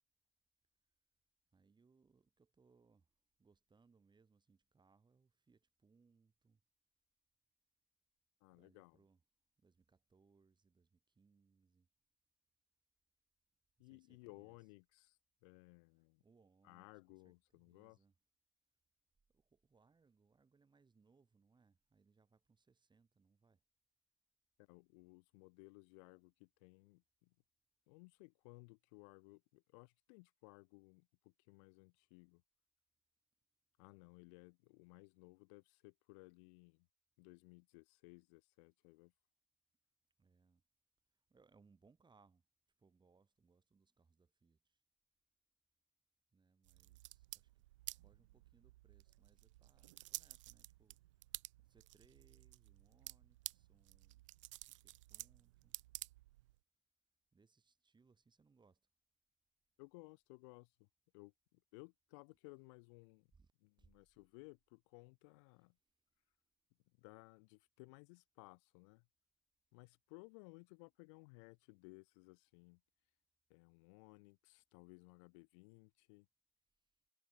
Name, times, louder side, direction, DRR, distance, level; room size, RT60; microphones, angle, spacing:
voice 1, 1.5-3.1 3.4-6.6 8.5-9.2 9.6-11.9 13.8-14.6 16.2-18.2 19.3-23.6 40.2-40.6 41.3-42.4 42.8-44.8 46.3-47.6 47.9-51.0 51.3-54.3 54.7-55.8 57.3-58.8 63.3-63.5 63.8-63.9, right 4 dB, 30° right, 5.8 m, -72 dB
voice 2, 8.4-9.0 13.8-16.2 16.6-18.0 24.6-27.3 27.9-32.4 33.8-36.9 37.2-39.1 59.8-60.9 61.1-63.3 63.6-65.8 67.0-69.1 69.7-72.8 73.5-76.3, left 31 dB, 75° left, 0.6 m, -60 dB
sound 1, 46.6-56.6, right 17 dB, 85° right, 0.8 m, -53 dB
hypercardioid pair, 60°, 16 cm